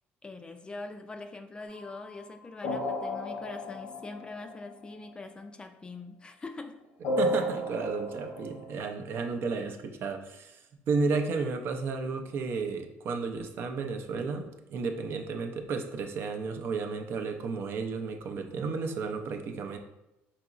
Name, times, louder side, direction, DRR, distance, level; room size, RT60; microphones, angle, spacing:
voice 1, 0.2-6.8, left 3 dB, 20° left, 7 dB, 0.3 m, -43 dB
sound 1, 1.7-5.0 7.0-8.8, left 1 dB, 85° left, 1.0 m, -33 dB
voice 2, 7.2-19.8, right 4 dB, 55° right, 5 dB, 0.5 m, -33 dB
4.9 x 2.9 x 2.4 m, 0.90 s
supercardioid pair, 95°, 5 cm